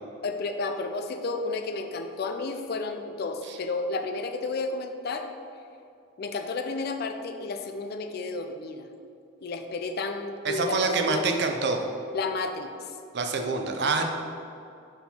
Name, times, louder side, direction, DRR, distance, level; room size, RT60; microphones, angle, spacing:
voice 1, 0.2-5.3 6.2-8.9 9.4-11.3 12.1-12.7, left 3 dB, 50° left, 6 dB, 0.4 m, -32 dB
voice 2, 10.4-11.8 13.1-14.1, right 3 dB, 60° right, 4 dB, 0.6 m, -26 dB
5.6 x 4.4 x 4.3 m, 2.5 s
head